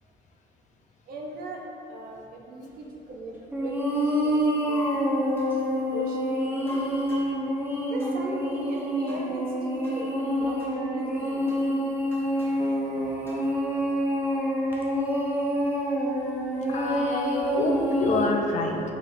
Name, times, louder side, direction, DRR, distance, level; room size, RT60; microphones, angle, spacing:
voice 1, 1.1-3.7 4.1-4.8 5.9-6.8 7.9-11.5, right 2 dB, 60° right, 0 dB, 0.5 m, -38 dB
sound 1, 3.5-18.2, equal, 10° right, 0.5 m, -27 dB
sound 2, 4.7-5.6 6.7-7.4 8.0-8.2 9.1-9.3 9.8-10.0 10.6-10.7 11.5-11.6 12.1-12.7 13.2-13.4, left 3 dB, 15° left, 0.9 m, -40 dB
voice 2, 16.7-18.8, left 3 dB, 45° left, 2 dB, 0.4 m, -27 dB
4.2 x 3.1 x 2.5 m, 2.9 s
cardioid pair, 110°, 17 cm